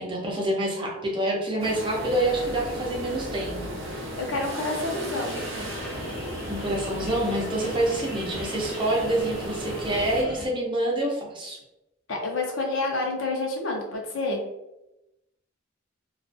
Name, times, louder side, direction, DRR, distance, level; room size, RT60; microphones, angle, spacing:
voice 1, 0.0-3.8 6.5-11.6, right 1 dB, 25° right, -3 dB, 0.6 m, -27 dB
sound 1, 1.6-10.2, equal, 75° right, 0.6 m, -35 dB
voice 2, 4.2-5.7 12.1-14.4, left 2 dB, 85° left, 0 dB, 0.7 m, -29 dB
sound 2, 5.2-10.5, left 1 dB, 65° left, 0.9 m, -41 dB
2.4 x 2.3 x 2.5 m, 0.91 s
head